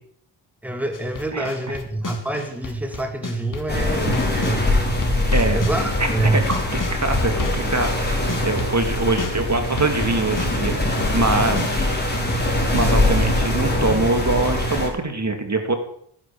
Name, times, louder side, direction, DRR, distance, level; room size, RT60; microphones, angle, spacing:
voice 1, 0.6-4.8 5.4-6.4, right 1 dB, 5° right, 6 dB, 2.5 m, -26 dB
sound 1, 0.9-4.6 5.0-13.2, left 3 dB, 40° left, 3.1 m, -32 dB
sound 2, 3.7-14.9, left 1 dB, 20° left, 5.4 m, -22 dB
voice 2, 6.0-12.2 12.7-15.7, right 3 dB, 35° right, 6 dB, 2.7 m, -24 dB
14.5 x 10.5 x 7.1 m, 0.65 s
cardioid pair, 75°, 48 cm